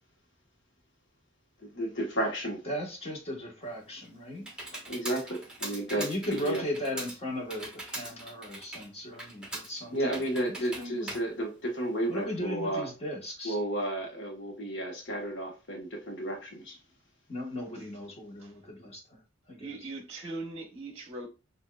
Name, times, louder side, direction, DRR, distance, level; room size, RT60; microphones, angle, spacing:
voice 1, 1.6-2.6 4.9-6.6 9.9-12.9 13.4-16.8, right 1 dB, 60° left, 1.3 m, -32 dB
voice 2, 2.6-4.8 6.0-10.0 10.4-11.1 12.1-13.6 17.3-19.2 19.5-19.7, left 1 dB, 30° left, 1.3 m, -37 dB
Computer keyboard, 3.6-12.2, right 2 dB, 5° right, 1.2 m, -42 dB
voice 3, 19.6-21.3, right 2 dB, 35° right, 1.0 m, -40 dB
7.0 x 2.7 x 2.3 m
head